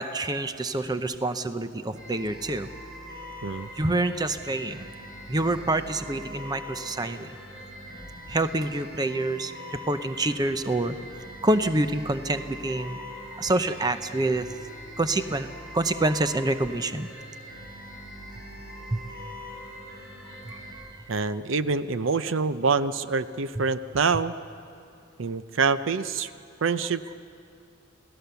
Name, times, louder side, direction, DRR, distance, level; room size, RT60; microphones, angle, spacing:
voice 1, 0.0-2.7 3.8-4.9 5.3-7.3 8.3-11.0 11.4-14.5 15.0-15.5 15.7-17.1 18.9-19.0 20.5-20.9 23.6-23.7, right 2 dB, 20° right, 10 dB, 0.7 m, -27 dB
sound 1, 1.9-20.7, equal, 45° right, 7.1 m, -42 dB
voice 2, 21.1-24.3 25.2-26.3 26.6-27.2, right 4 dB, 65° right, 13 dB, 0.6 m, -26 dB
28.0 x 17.5 x 6.9 m, 2.4 s
head